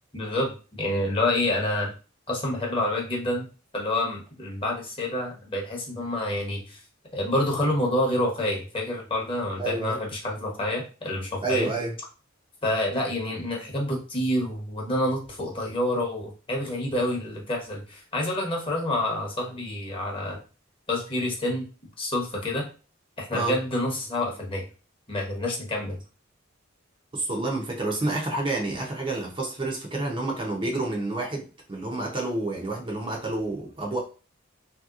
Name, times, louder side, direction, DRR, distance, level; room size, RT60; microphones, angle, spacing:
voice 1, 0.1-1.9 2.3-3.5 3.7-6.8 7.1-11.7 12.6-20.4 20.9-21.7 22.0-22.7 23.2-24.6 25.1-26.0, left 1 dB, 25° left, 0.9 m, -28 dB
voice 2, 9.6-10.0 11.4-12.0 23.3-23.6 27.1-34.0, right 2 dB, 25° right, 0.6 m, -29 dB
3.2 x 2.8 x 2.4 m
head